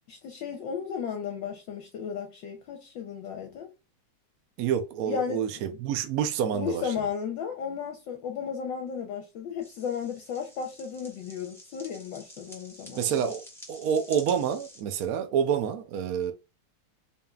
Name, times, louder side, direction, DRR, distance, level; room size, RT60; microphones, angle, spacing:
voice 1, 0.1-3.7 5.1-5.6 6.5-13.2, left 7 dB, 70° left, 1.3 m, -34 dB
voice 2, 4.6-6.8 12.9-13.4 13.7-16.3, right 8 dB, 80° right, 0.8 m, -28 dB
sound 1, 9.6-14.8, equal, 5° left, 0.4 m, -49 dB
4.1 x 3.6 x 2.3 m
omnidirectional pair, 2.4 m